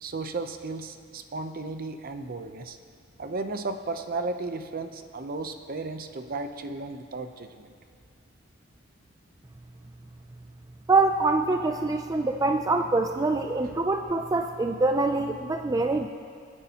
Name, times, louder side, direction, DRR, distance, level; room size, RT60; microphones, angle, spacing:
voice 1, 0.0-2.8 3.2-7.7, right 3 dB, 50° right, 8 dB, 0.7 m, -34 dB
voice 2, 10.9-16.1, right 3 dB, 20° right, 5 dB, 0.4 m, -24 dB
27.0 x 9.8 x 2.9 m, 2.2 s
head